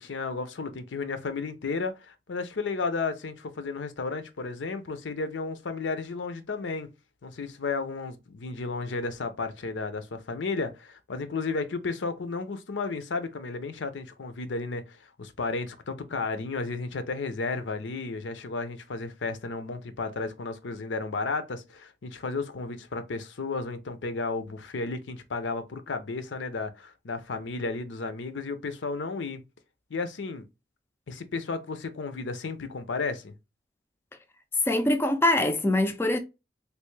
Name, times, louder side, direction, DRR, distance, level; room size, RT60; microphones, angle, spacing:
voice 1, 0.0-6.9 7.2-29.4 29.9-30.4 31.1-33.3, left 4 dB, 80° left, 0.6 m, -33 dB
voice 2, 34.7-36.2, left 1 dB, 10° left, 0.3 m, -23 dB
3.3 x 2.6 x 3.1 m
head